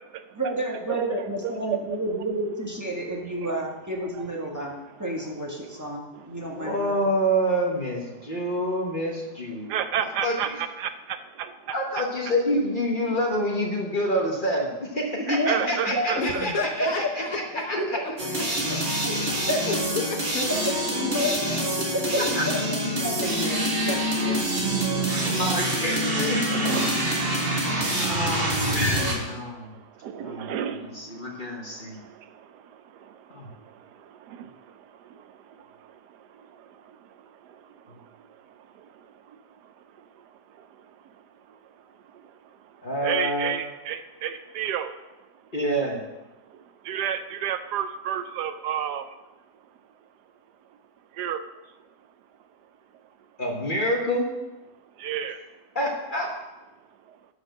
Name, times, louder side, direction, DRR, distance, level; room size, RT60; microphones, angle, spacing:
voice 1, 0.3-4.7 5.0-7.0 15.2-16.1 16.3-16.9 17.8-18.0 19.0-19.1 19.5-19.6 20.6-21.4 21.7-24.4, equal, 10° right, -2 dB, 1.5 m, -30 dB
voice 2, 0.9-1.8 4.1-4.2 9.7-10.9 11.4-11.5 13.1-13.2 15.3-16.4 26.5-27.0 27.4-27.5 30.0-30.9 34.4-34.5 43.0-44.9 46.9-49.0 51.2-51.4 55.0-55.4, right 9 dB, 75° right, 10 dB, 1.1 m, -30 dB
voice 3, 6.6-9.7 10.0-10.5 11.7-17.4 17.7-17.8 22.3-22.5 25.0-26.7 28.0-29.7 30.2-32.0 33.3-33.5 42.8-43.7 45.5-46.0 53.4-54.3 55.7-56.3, equal, 35° left, 0 dB, 1.2 m, -27 dB
voice 4, 16.2-18.0 18.4-18.8 19.1-20.7 21.0-21.3 22.2-22.5, left 3 dB, 60° left, 3 dB, 1.3 m, -33 dB
sound 1, 18.2-29.1, right 1 dB, 35° right, 1.9 m, -26 dB
11.5 x 4.8 x 6.4 m, 1.1 s
omnidirectional pair, 1.8 m